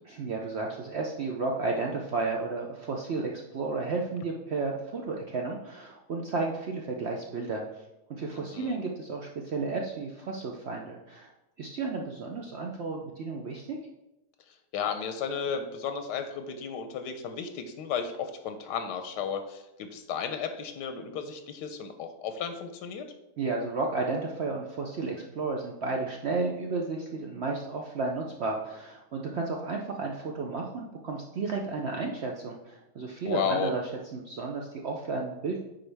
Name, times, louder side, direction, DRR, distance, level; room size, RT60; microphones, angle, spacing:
voice 1, 0.1-7.6 8.1-11.3 11.6-13.8 23.4-33.8 34.1-35.6, right 3 dB, 65° right, 0 dB, 0.6 m, -32 dB
voice 2, 8.4-8.8 14.7-23.0 33.3-33.7, left 6 dB, 90° left, 7 dB, 1.2 m, -33 dB
9.7 x 3.9 x 3.4 m, 0.94 s
omnidirectional pair, 1.8 m